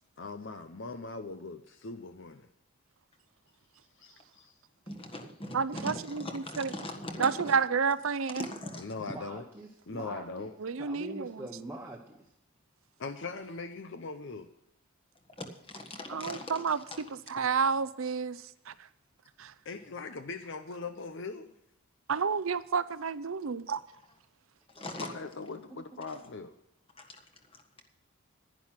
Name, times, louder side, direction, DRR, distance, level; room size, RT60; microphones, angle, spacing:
voice 1, 0.2-2.5 4.0-4.5 8.8-9.4 9.9-10.5 13.0-14.5 19.6-21.5 25.0-26.5, left 3 dB, 55° left, 0.7 m, -40 dB
voice 2, 4.9-7.6 8.3-8.9 15.4-17.0 23.7-23.8 24.7-25.1 27.0-27.2 27.5-27.8, left 1 dB, 25° left, 1.5 m, -41 dB
voice 3, 5.5-6.7 7.2-8.4 10.6-11.4 16.1-16.8 17.3-18.4 18.7-18.8 19.4-19.5 22.1-23.8, right 5 dB, 65° right, 0.6 m, -30 dB
voice 4, 9.0-10.5 10.8-12.3 24.7-24.8 25.7-25.8, right 1 dB, 10° right, 1.0 m, -44 dB
11.0 x 10.5 x 5.8 m
head